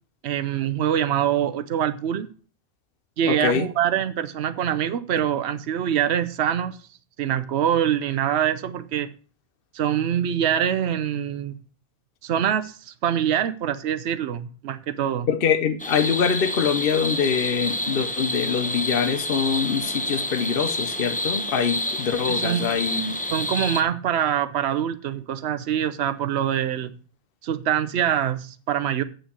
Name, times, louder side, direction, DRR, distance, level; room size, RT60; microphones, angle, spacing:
voice 1, 0.2-2.3 3.2-6.8 7.2-9.1 9.7-11.5 12.2-15.3 22.3-22.7 23.3-26.9 27.4-29.0, right 10 dB, 85° right, 12 dB, 1.0 m, -24 dB
voice 2, 3.2-3.7 15.3-23.2, left 7 dB, 60° left, 10 dB, 1.0 m, -24 dB
sound 1, 15.8-23.8, left 1 dB, 10° left, 0.9 m, -28 dB
8.2 x 6.4 x 7.9 m, 0.40 s
omnidirectional pair, 1.1 m